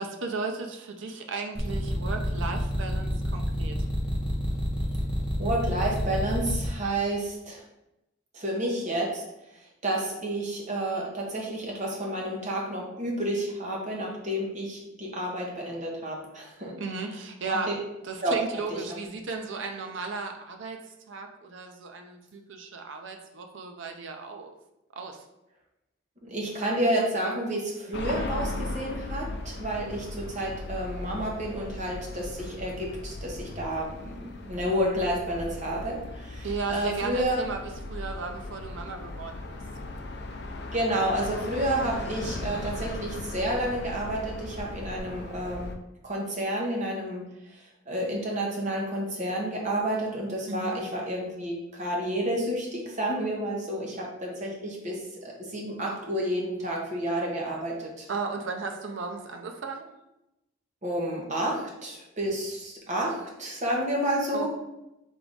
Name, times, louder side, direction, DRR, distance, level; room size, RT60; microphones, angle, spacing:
voice 1, 0.0-3.8 16.8-17.8 18.0-20.8 21.1-24.5 24.9-25.2 36.4-39.6 50.5-50.8 58.1-59.9 64.3-64.5, right 4 dB, 70° right, 4 dB, 0.5 m, -35 dB
sound 1, 1.6-6.7, equal, 5° right, 0.8 m, -29 dB
voice 2, 5.4-7.6 8.3-9.2 9.8-16.7 17.5-17.6 18.2-18.3 26.2-37.4 40.7-45.7 46.0-47.2 47.9-58.1 60.8-64.5, right 1 dB, 40° right, -2 dB, 1.0 m, -30 dB
sound 2, 27.9-45.8, left 2 dB, 55° left, 0.5 m, -37 dB
3.7 x 3.4 x 3.8 m, 0.89 s
head